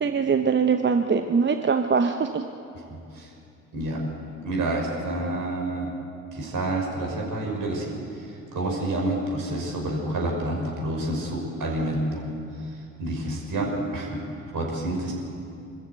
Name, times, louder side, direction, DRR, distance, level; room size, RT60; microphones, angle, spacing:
voice 1, 0.0-2.4, right 5 dB, 30° right, 7 dB, 1.0 m, -22 dB
voice 2, 2.9-3.3 3.7-4.0 4.4-5.9 6.3-12.2 12.6-14.2 14.5-15.1, right 1 dB, 55° right, -1 dB, 5.7 m, -29 dB
24.5 x 14.0 x 8.2 m, 2.6 s
figure-of-eight pair, 45°, 38 cm